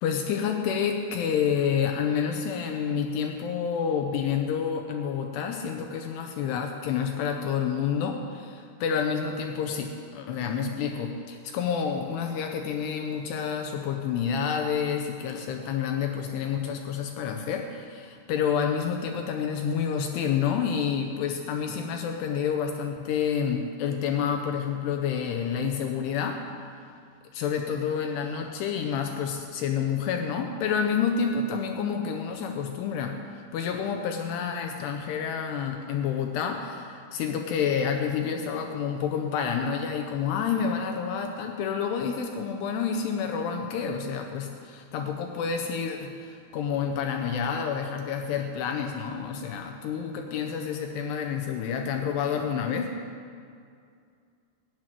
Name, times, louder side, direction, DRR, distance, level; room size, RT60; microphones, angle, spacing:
voice 1, 0.0-26.4 27.3-52.9, left 7 dB, 80° left, 4 dB, 2.6 m, -29 dB
12.5 x 5.9 x 9.0 m, 2.3 s
omnidirectional pair, 5.0 m